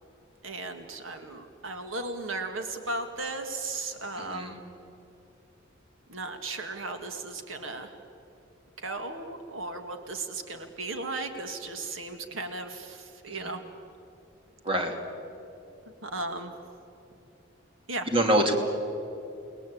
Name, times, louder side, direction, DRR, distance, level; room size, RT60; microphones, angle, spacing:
voice 1, 0.4-4.6 6.1-8.0 8.8-13.6 16.0-16.5 17.9-18.1, right 2 dB, 90° right, 6 dB, 2.1 m, -36 dB
voice 2, 14.6-15.0 18.1-18.6, right 1 dB, 25° right, 3 dB, 2.8 m, -24 dB
29.0 x 20.5 x 8.7 m, 2.8 s
head